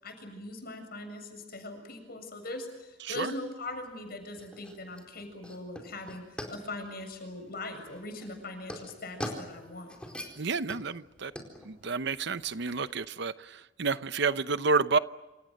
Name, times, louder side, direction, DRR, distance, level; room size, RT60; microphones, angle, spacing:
voice 1, 0.0-9.9, left 2 dB, 50° left, 6 dB, 7.4 m, -41 dB
voice 2, 3.0-3.3 10.4-11.3 11.6-15.0, right 4 dB, 60° right, 13 dB, 0.8 m, -30 dB
sound 1, 3.7-12.9, equal, 5° left, 4.4 m, -44 dB
28.0 x 27.5 x 6.6 m, 1.1 s
head